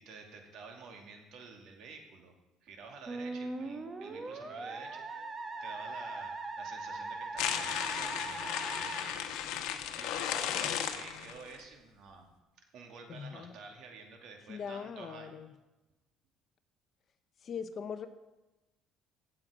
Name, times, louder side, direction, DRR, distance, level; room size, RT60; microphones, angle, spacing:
voice 1, 0.0-2.3 2.6-5.3 5.6-12.3 12.7-15.4, right 4 dB, 65° right, 3 dB, 2.4 m, -51 dB
Musical instrument, 3.1-9.9, right 3 dB, 25° right, 1.1 m, -41 dB
sound 1, 7.4-11.6, left 10 dB, 80° left, 1.2 m, -35 dB
voice 2, 13.1-13.5 14.5-15.5 17.4-18.1, left 6 dB, 40° left, 10 dB, 0.9 m, -40 dB
16.5 x 7.7 x 5.0 m, 1.1 s
cardioid pair, 130°, 0 cm